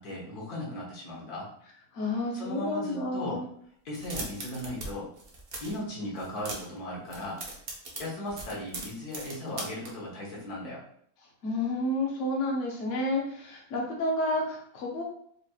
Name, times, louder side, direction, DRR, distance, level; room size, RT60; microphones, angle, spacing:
voice 1, 0.0-1.5 2.3-3.5 3.9-5.1 5.6-7.5 8.0-10.8, left 1 dB, 90° left, -4 dB, 1.7 m, -37 dB
voice 2, 1.9-3.5 11.4-15.0, left 1 dB, 60° left, -2 dB, 1.1 m, -30 dB
sound 1, 3.9-4.9 5.1-5.8 6.2-6.8 7.1-9.9, right 2 dB, 45° right, 0.9 m, -39 dB
5.0 x 2.9 x 2.3 m, 0.66 s
omnidirectional pair, 1.6 m